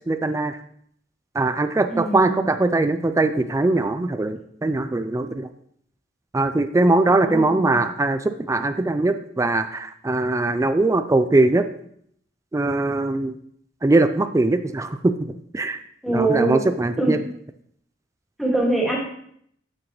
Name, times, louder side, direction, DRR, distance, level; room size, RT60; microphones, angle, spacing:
voice 1, 0.1-0.6 1.3-5.5 6.3-11.6 12.5-13.4 13.8-15.8 16.1-17.2, right 2 dB, 15° right, 10 dB, 0.3 m, -21 dB
voice 2, 1.9-2.4 7.1-7.8 16.0-16.6 17.0-17.1 18.4-19.0, right 2 dB, ahead, -4 dB, 2.0 m, -23 dB
8.8 x 6.1 x 3.1 m, 0.67 s
head